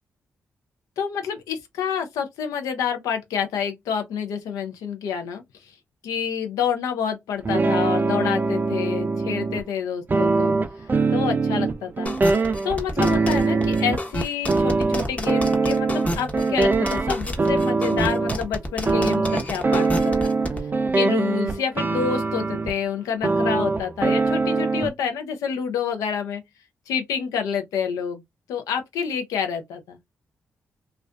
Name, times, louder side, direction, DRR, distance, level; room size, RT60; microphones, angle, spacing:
voice 1, 1.0-5.7 6.0-10.5 11.1-12.1 12.6-20.3 20.9-26.4 26.9-28.2 28.5-30.0, left 7 dB, 80° left, 0.6 m, -28 dB
sound 1, 7.4-9.6 10.1-14.0 14.5-18.4 18.8-22.7 23.2-24.9, right 3 dB, 35° right, 0.4 m, -22 dB
sound 2, 12.1-20.6, left 1 dB, 25° left, 0.9 m, -29 dB
2.4 x 2.2 x 2.2 m
supercardioid pair, 50°, 6 cm